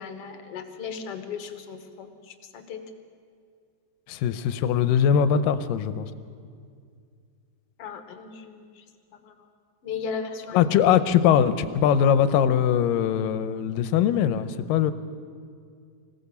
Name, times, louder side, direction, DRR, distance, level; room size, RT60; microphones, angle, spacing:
voice 1, 0.0-2.8 7.8-8.8 9.1-9.5 9.8-10.7, left 6 dB, 55° left, 7 dB, 1.8 m, -37 dB
voice 2, 4.1-6.1 10.5-14.9, left 8 dB, 80° left, 12 dB, 2.4 m, -21 dB
25.5 x 17.0 x 7.1 m, 2.2 s
omnidirectional pair, 4.0 m